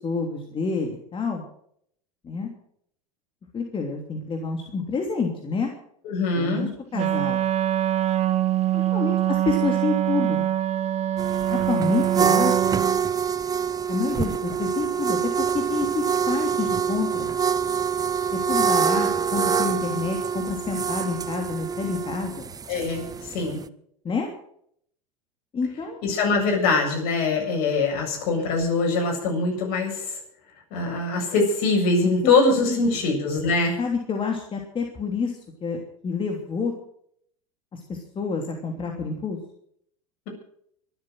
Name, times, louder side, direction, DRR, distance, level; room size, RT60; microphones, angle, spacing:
voice 1, 0.0-1.4 2.2-2.5 3.5-5.7 6.3-7.4 8.7-10.5 11.5-12.8 13.9-17.3 18.3-22.5 24.0-24.3 25.5-26.0 32.2-32.3 32.7-32.8 33.8-35.3 35.6-36.7 37.7-39.4, left 4 dB, 30° left, 2 dB, 3.1 m, -28 dB
voice 2, 6.0-6.7 22.7-23.6 26.0-30.2 30.7-33.7, left 3 dB, 55° left, 2 dB, 7.6 m, -23 dB
Wind instrument woodwind instrument, 6.9-13.0, right 12 dB, 40° right, 1.4 m, -24 dB
sound 1, 11.2-23.6, right 7 dB, 20° right, 0.7 m, -25 dB
24.5 x 8.3 x 6.4 m, 0.67 s
hypercardioid pair, 85°, 18 cm